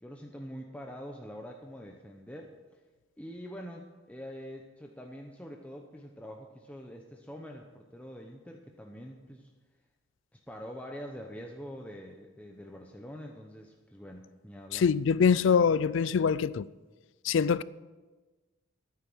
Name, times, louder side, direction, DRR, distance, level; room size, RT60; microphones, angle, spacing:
voice 1, 0.0-2.5 3.2-9.5 10.3-14.8, equal, 5° left, 0.8 m, -45 dB
voice 2, 14.7-16.7 17.2-17.6, left 6 dB, 65° left, 0.4 m, -24 dB
13.5 x 9.5 x 6.2 m
head